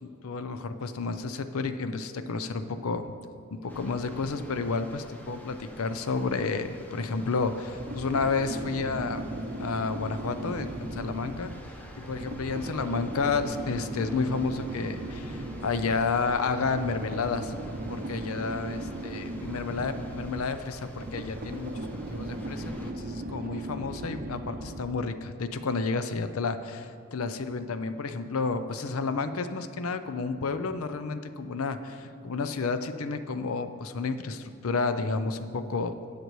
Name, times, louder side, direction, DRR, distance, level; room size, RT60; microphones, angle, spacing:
voice 1, 0.0-3.1 3.5-9.3 9.6-11.5 12.0-17.5 17.9-35.9, left 4 dB, 70° left, 10 dB, 0.6 m, -31 dB
sound 1, 3.7-22.9, equal, 10° left, 0.7 m, -47 dB
sound 2, 7.5-25.1, right 1 dB, 40° right, 0.6 m, -37 dB
19.5 x 6.7 x 3.1 m, 2.3 s
head